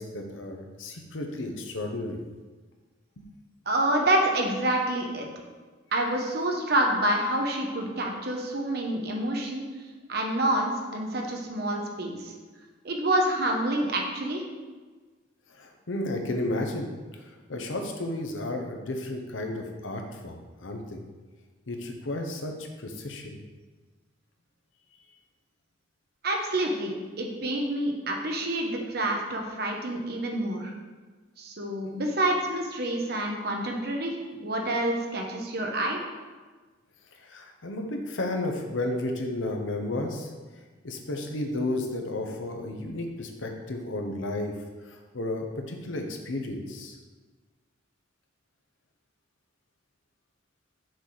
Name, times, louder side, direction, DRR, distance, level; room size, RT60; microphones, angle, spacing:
voice 1, 0.0-2.2 3.2-3.3 15.5-21.0 21.7-22.5 22.8-23.4 37.2-40.3 40.8-44.5 44.9-47.0, left 2 dB, 85° left, 3 dB, 0.9 m, -33 dB
voice 2, 3.7-5.3 5.9-9.6 10.1-12.3 12.8-14.4 26.2-30.7 31.4-36.0, right 1 dB, 55° right, 1 dB, 1.0 m, -27 dB
6.4 x 4.1 x 4.8 m, 1.4 s
head